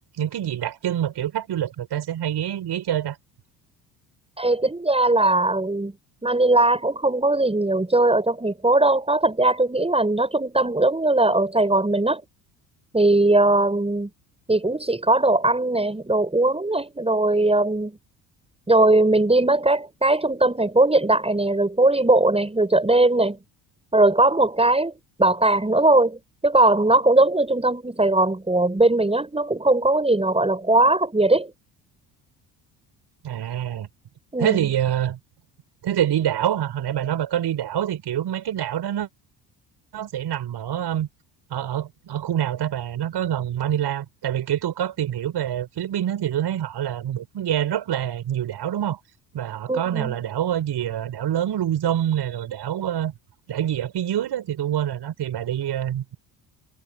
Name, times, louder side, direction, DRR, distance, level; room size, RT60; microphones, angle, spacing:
voice 1, 0.2-3.2 33.2-33.9 34.4-35.2 35.8-39.1 39.9-41.1 41.5-49.0 49.3-53.1 53.5-56.2, right 10 dB, 55° right, 7.3 m, -26 dB
voice 2, 4.4-5.9 6.2-12.2 12.9-14.1 14.5-18.0 18.7-23.4 23.9-24.9 25.2-31.5 34.3-34.6 49.7-50.1, right 2 dB, 10° right, 7.9 m, -19 dB
hypercardioid pair, 65°, 47 cm